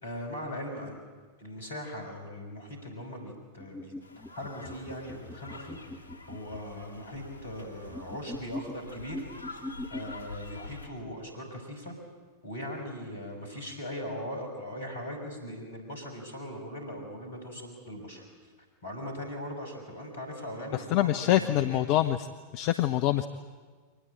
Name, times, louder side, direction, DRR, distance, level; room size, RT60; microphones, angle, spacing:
voice 1, 0.0-1.0 1.4-5.8 6.3-9.2 9.9-11.9 12.4-18.3 18.8-21.8, left 1 dB, 65° left, 4 dB, 5.6 m, -40 dB
sound 1, 3.6-6.6 7.8-10.1, left 1 dB, 5° left, 1.6 m, -41 dB
sound 2, 4.0-10.9, left 3 dB, 85° right, 2.4 m, -46 dB
voice 2, 20.9-22.3 22.5-23.3, left 13 dB, 45° left, 10 dB, 0.8 m, -25 dB
24.0 x 19.0 x 8.8 m, 1.5 s
figure-of-eight pair, 90°, 0 cm